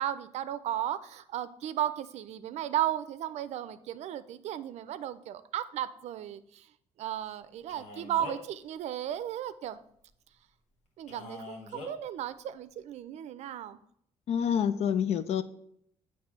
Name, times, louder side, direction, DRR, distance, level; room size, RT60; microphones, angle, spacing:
voice 1, 0.0-6.7 7.0-9.8 11.0-13.8, right 11 dB, 75° right, 13 dB, 0.5 m, -35 dB
Male speech man speaking, 7.7-8.6 11.1-11.9, left 2 dB, 80° left, 1.4 m, -43 dB
voice 2, 14.3-15.4, left 8 dB, 65° left, 13 dB, 0.5 m, -27 dB
8.6 x 3.1 x 5.9 m, 0.71 s
cardioid pair, 140°, 12 cm